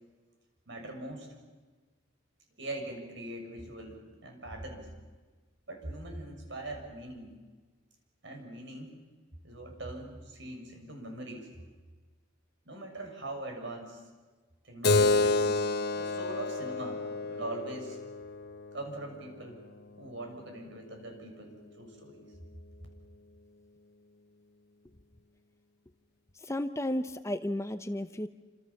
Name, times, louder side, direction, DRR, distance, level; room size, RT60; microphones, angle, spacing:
voice 1, 0.7-1.3 2.6-4.9 5.7-7.3 8.2-8.9 9.4-11.5 12.7-14.0 14.6-15.6 15.9-18.0 18.7-19.6 20.0-22.3, right 1 dB, 65° right, 3 dB, 6.9 m, -42 dB
Keyboard (musical), 14.8-20.0, left 3 dB, 55° left, 1.3 m, -30 dB
voice 2, 26.4-28.3, left 1 dB, 15° left, 10 dB, 0.8 m, -33 dB
28.5 x 26.5 x 7.2 m, 1.3 s
head